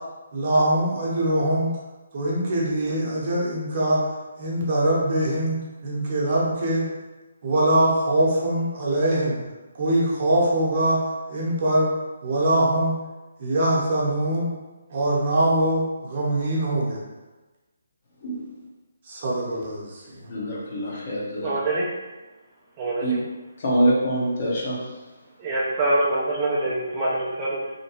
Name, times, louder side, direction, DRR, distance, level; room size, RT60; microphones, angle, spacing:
voice 1, 0.3-1.7 2.1-4.0 4.4-6.9 7.4-9.4 9.7-11.9 12.2-13.0 13.4-14.5 14.9-17.0 19.1-20.2, right 1 dB, 45° right, -5 dB, 0.8 m, -23 dB
voice 2, 20.3-21.5 23.0-23.1 23.6-24.9, right 1 dB, 45° left, -5 dB, 0.8 m, -24 dB
voice 3, 21.4-21.9 22.8-23.2 25.4-27.7, right 2 dB, 25° right, -6 dB, 0.4 m, -25 dB
2.8 x 2.2 x 2.9 m, 1.2 s
figure-of-eight pair, 155°, 0 cm